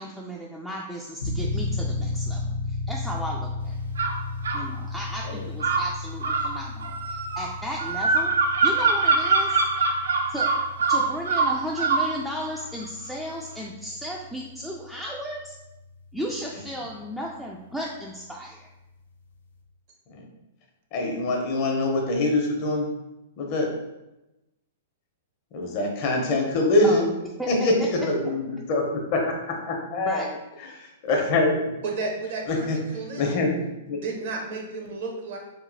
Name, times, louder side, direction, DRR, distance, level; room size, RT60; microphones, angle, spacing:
voice 1, 0.0-2.4 2.7-3.8 4.5-8.3 8.6-9.6 10.3-10.5 10.9-15.5 16.1-18.7 26.8-27.1 27.4-27.5 30.0-30.4, equal, ahead, -3 dB, 0.3 m, -34 dB
sound 1, 1.2-15.6, left 3 dB, 80° left, 0.4 m, -34 dB
sound 2, 4.0-4.7 5.6-12.1, right 4 dB, 80° right, 0.4 m, -23 dB
voice 2, 20.9-22.9 23.4-23.7 25.5-27.1 27.5-30.3 30.7-31.6 32.5-32.8 33.2-33.5 33.9-34.0, left 2 dB, 45° left, 1 dB, 0.7 m, -24 dB
voice 3, 31.8-33.5 33.9-35.4, right 3 dB, 60° right, 0 dB, 0.8 m, -33 dB
2.9 x 2.7 x 2.6 m, 0.96 s
hypercardioid pair, 120°, 0 cm